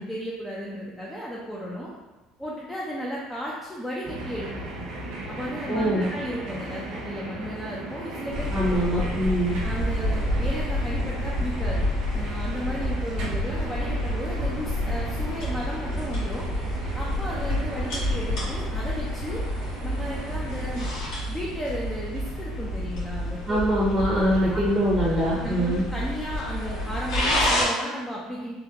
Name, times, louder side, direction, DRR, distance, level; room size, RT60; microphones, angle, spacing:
voice 1, 0.0-1.9 2.4-4.8 5.3-8.6 8.9-9.1 9.6-11.8 12.1-16.5 16.9-19.4 19.8-20.9 21.3-23.6 24.5-24.6 25.3-28.5, equal, 10° left, -5 dB, 0.5 m, -34 dB
sound 1, 4.0-21.0, right 2 dB, 75° right, 1.0 m, -38 dB
voice 2, 5.7-6.1 8.5-9.6 23.5-25.8, equal, 20° right, -6 dB, 0.8 m, -23 dB
sound 2, 8.3-27.6, left 1 dB, 70° left, 1.5 m, -29 dB
3.6 x 2.2 x 2.8 m, 1.1 s
supercardioid pair, 110°, 0 cm